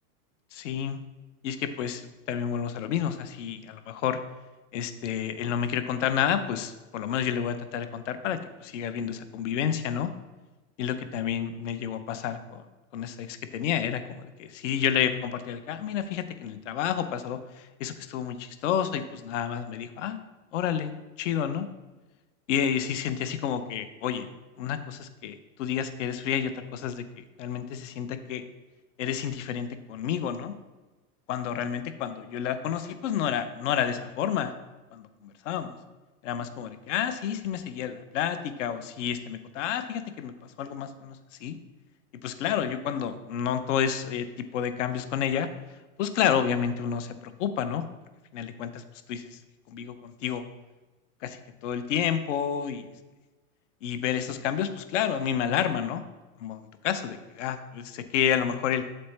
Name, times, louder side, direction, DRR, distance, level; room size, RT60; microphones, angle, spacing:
voice 1, 0.5-1.0 1.4-4.2 4.7-10.1 10.8-12.6 12.9-14.0 14.4-20.2 20.5-20.9 21.2-21.7 22.5-24.3 24.6-28.4 29.0-30.6 31.3-34.5 34.9-35.8 36.2-41.6 42.2-45.5 46.0-47.8 48.3-48.8 49.1-49.4 49.7-50.4 51.2-51.4 51.6-52.9 53.8-56.0 56.4-58.8, left 9 dB, 55° left, 10 dB, 0.5 m, -30 dB
7.8 x 4.2 x 3.2 m, 1.2 s
supercardioid pair, 175°, 44 cm